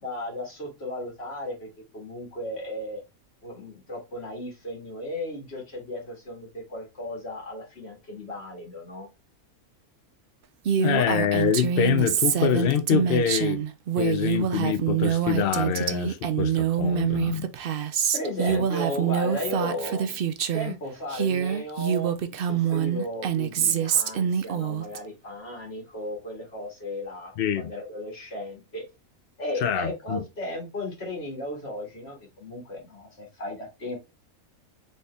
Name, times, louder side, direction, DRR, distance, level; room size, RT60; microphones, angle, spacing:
voice 1, 0.0-3.0 3.4-9.1 18.1-20.2 20.5-28.8 29.4-34.0, left 1 dB, 45° left, 2.0 m, -35 dB
Female speech woman speaking, 10.6-20.7 21.1-25.0, right 8 dB, 70° right, 0.5 m, -25 dB
voice 2, 10.8-13.6 14.0-17.5 18.5-18.6 27.4-27.7 29.6-30.2, left 8 dB, 65° left, 0.6 m, -25 dB
4.1 x 3.7 x 3.3 m
omnidirectional pair, 1.5 m